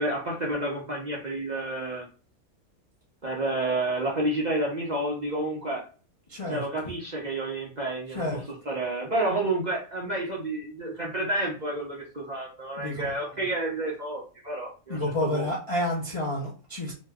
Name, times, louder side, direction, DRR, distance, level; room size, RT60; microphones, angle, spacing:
voice 1, 0.0-2.1 3.2-5.8 6.5-8.4 8.7-15.5, right 2 dB, 45° right, -3 dB, 0.6 m, -30 dB
voice 2, 6.3-6.6 8.1-8.4 12.8-13.0 14.9-16.9, left 1 dB, 40° left, -4 dB, 0.5 m, -29 dB
3.0 x 2.1 x 3.5 m, 0.36 s
omnidirectional pair, 1.5 m